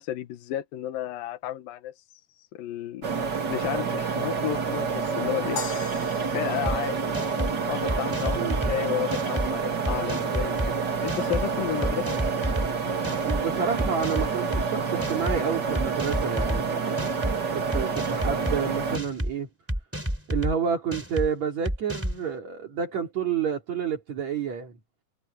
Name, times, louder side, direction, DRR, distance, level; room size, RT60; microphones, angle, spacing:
voice 1, 0.0-1.9 2.4-3.1 3.5-5.6 6.2-7.1 7.4-10.6 11.0-12.1, left 12 dB, 85° left, 3.0 m, -32 dB
sound 1, 3.0-19.0, right 5 dB, 35° right, 2.2 m, -28 dB
sound 2, 5.6-7.9, left 6 dB, 65° left, 4.1 m, -39 dB
sound 3, 6.7-6.8 7.1-7.5 7.9-8.7 9.1-9.5 9.9-10.7 11.1-11.4 11.8-12.7 13.0-13.4 13.8-14.6 15.0-15.4 15.8-16.6 17.0-17.3 17.7-18.6 18.9-19.3 19.7-20.5 20.9-21.3 21.7-22.2, equal, 5° right, 3.2 m, -29 dB
voice 2, 13.2-17.1 17.5-19.5 20.3-24.7, right 7 dB, 55° right, 4.2 m, -29 dB
omnidirectional pair, 4.0 m